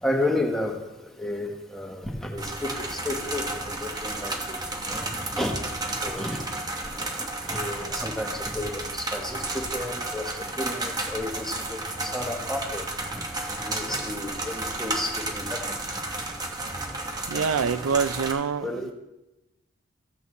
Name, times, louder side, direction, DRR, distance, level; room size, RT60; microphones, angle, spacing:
voice 1, 0.0-4.6 4.9-5.5 5.8-6.4 6.9-13.2 13.5-15.8 17.3-17.7 18.6-18.9, left 1 dB, ahead, 0 dB, 1.1 m, -32 dB
sound 1, 2.4-18.3, right 2 dB, 20° right, 0.8 m, -32 dB
voice 2, 17.3-18.9, right 6 dB, 80° right, 14 dB, 0.4 m, -26 dB
14.0 x 8.1 x 3.2 m, 0.96 s
head